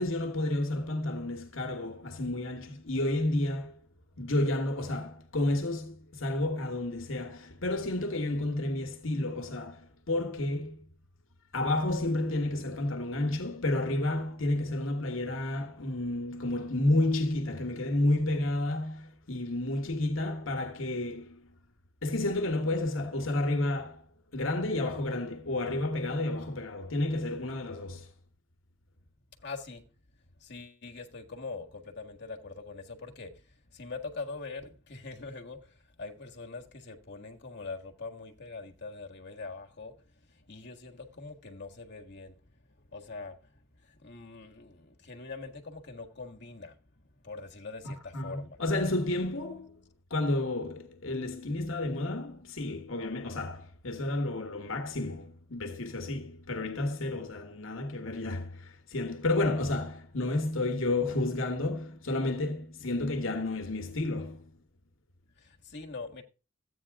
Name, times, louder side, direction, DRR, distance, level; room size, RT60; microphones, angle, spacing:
voice 1, 0.0-3.8 4.2-10.8 11.5-21.6 22.0-24.0 24.3-28.1 47.8-49.8 50.1-64.5, left 2 dB, 70° left, 1.4 m, -31 dB
voice 2, 29.4-29.9 30.4-42.5 42.8-46.8 47.2-48.6 65.4-66.2, left 3 dB, 55° left, 1.6 m, -43 dB
13.5 x 9.1 x 3.6 m
head